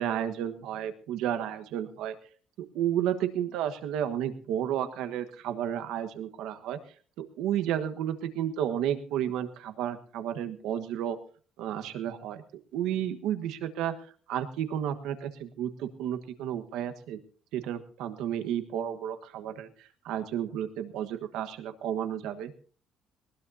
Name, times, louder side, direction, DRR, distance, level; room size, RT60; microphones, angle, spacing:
voice 1, 0.0-2.2 2.6-6.8 7.2-11.2 11.6-12.4 12.7-13.9 14.3-17.2 17.5-22.5, right 10 dB, 85° right, 8 dB, 1.4 m, -32 dB
19.5 x 19.0 x 2.8 m, 0.41 s
cardioid pair, 160°, 0 cm